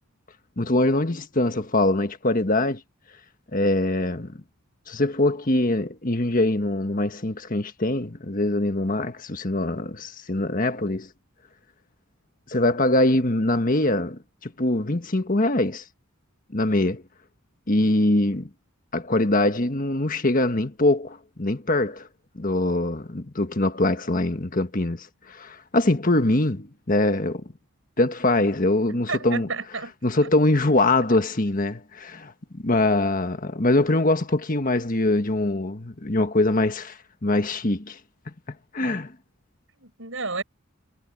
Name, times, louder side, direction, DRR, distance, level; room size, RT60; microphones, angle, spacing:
voice 1, 0.6-2.8 3.5-4.4 4.9-11.1 12.5-15.8 16.5-17.0 17.7-18.5 18.9-22.1 22.3-27.4 28.0-29.5 30.0-38.0 38.7-39.1, left 2 dB, 40° left, 1.5 m, -23 dB
voice 2, 28.9-29.9 30.2-30.3 39.8-40.4, right 4 dB, 65° right, 7.8 m, -31 dB
head